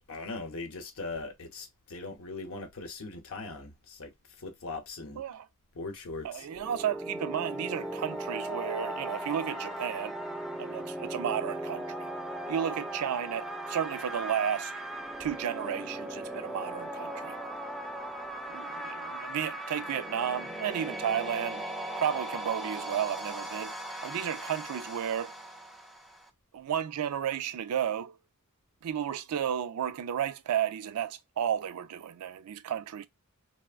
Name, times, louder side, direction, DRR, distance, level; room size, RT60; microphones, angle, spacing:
voice 1, 0.1-4.1 4.4-5.2 5.7-6.5, left 3 dB, 65° left, 0.7 m, -40 dB
voice 2, 5.2-5.5 6.2-10.1 10.6-12.1 12.5-14.7 15.2-17.4 18.5-21.6 22.0-23.7 24.0-25.3 26.5-28.2 28.8-33.1, right 9 dB, 90° right, 0.4 m, -33 dB
sound 1, 6.4-26.3, right 1 dB, ahead, 0.3 m, -38 dB
3.3 x 2.1 x 2.4 m
head